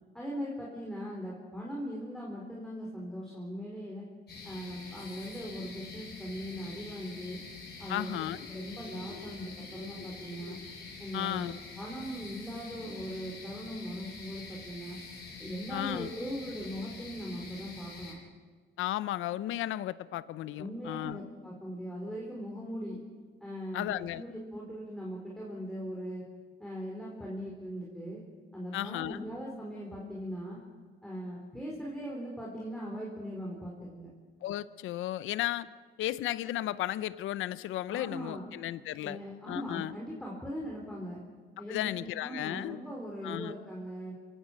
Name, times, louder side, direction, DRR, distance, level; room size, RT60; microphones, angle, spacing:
voice 1, 0.1-4.1 4.4-7.4 7.8-10.6 11.0-11.5 11.8-15.0 15.4-18.2 20.6-23.0 23.4-26.2 26.6-28.2 28.5-30.6 31.0-34.1 37.9-38.5 39.0-41.2 41.6-44.2, equal, ahead, -4 dB, 4.6 m, -40 dB
sound 1, 4.3-18.1, left 4 dB, 55° left, 7.9 m, -46 dB
voice 2, 7.9-8.4 11.1-11.5 15.7-16.1 18.8-21.2 23.7-24.2 28.7-29.2 34.4-35.7 36.0-39.2 39.5-40.0 41.7-42.8 43.2-43.6, left 14 dB, 85° left, 17 dB, 0.7 m, -34 dB
26.0 x 16.5 x 6.4 m, 1.5 s
cardioid pair, 90°, 20 cm